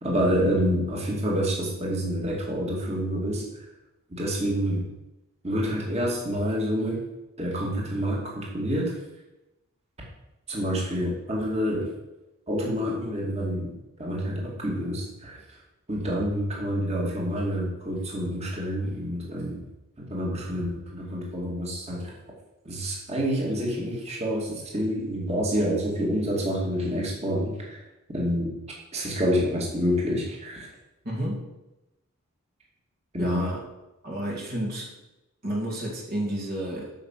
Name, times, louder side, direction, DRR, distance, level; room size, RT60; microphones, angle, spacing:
voice 1, 0.0-3.4 4.1-4.8 5.4-7.0 7.4-8.9 10.5-11.9 12.5-15.6 15.9-19.6 20.1-22.1 22.6-27.8 28.1-28.5 28.9-30.7 33.1-33.4, equal, 30° right, -2 dB, 2.5 m, -27 dB
voice 2, 31.0-31.5 33.2-33.6 34.0-34.9 35.4-36.9, right 1 dB, 45° right, -3 dB, 2.5 m, -31 dB
9.2 x 6.1 x 7.5 m, 0.97 s
head